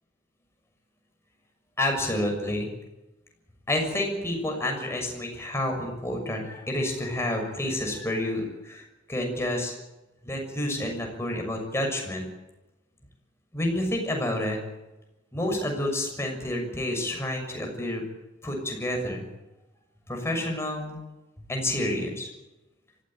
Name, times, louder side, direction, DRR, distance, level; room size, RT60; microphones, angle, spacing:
voice 1, 1.8-2.7 3.7-8.8 9.1-9.7 10.2-12.3 13.5-14.6 15.3-18.0 18.4-19.2 20.1-21.0 21.5-22.3, left 1 dB, 15° left, 2 dB, 6.6 m, -29 dB
24.0 x 16.0 x 9.1 m, 1.0 s
head